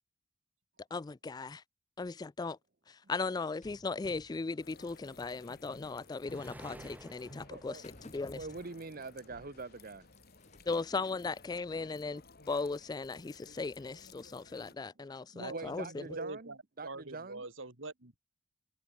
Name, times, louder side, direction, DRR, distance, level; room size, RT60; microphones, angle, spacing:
voice 1, 0.9-1.6 2.0-2.6 2.9-8.4 10.7-12.2 12.5-16.0, left 4 dB, 20° left, 0.3 m, -37 dB
sound 1, 3.6-9.1 9.3-10.9, left 1 dB, 35° left, 4.8 m, -55 dB
sound 2, 4.6-14.7, left 4 dB, 50° left, 2.6 m, -58 dB
sound 3, 5.5-10.5 10.8-12.5, right 1 dB, 10° right, 5.6 m, -57 dB
voice 2, 7.5-7.8 8.3-10.1 15.5-16.5 16.8-17.4, right 3 dB, 45° right, 1.0 m, -43 dB
voice 3, 15.3-16.6 16.8-18.2, right 2 dB, 75° right, 3.1 m, -44 dB
head